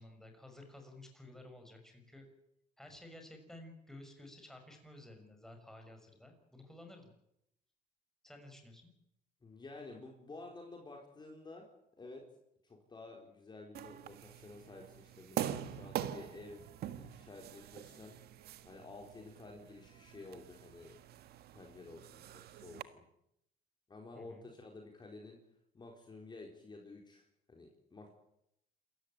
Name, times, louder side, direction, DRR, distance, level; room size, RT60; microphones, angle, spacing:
voice 1, 0.0-2.3 2.8-7.1 8.2-8.9 24.1-24.5, left 1 dB, 5° left, 3 dB, 6.2 m, -53 dB
voice 2, 9.4-11.6 12.0-12.2 12.6-16.6 16.9-18.1 18.6-21.0 21.5-23.0 23.9-25.4 25.7-28.1, left 2 dB, 25° left, 1 dB, 4.4 m, -51 dB
sound 1, 13.7-22.8, right 11 dB, 70° right, 1.6 m, -44 dB
27.5 x 15.0 x 9.0 m, 0.79 s
cardioid pair, 110°, 17 cm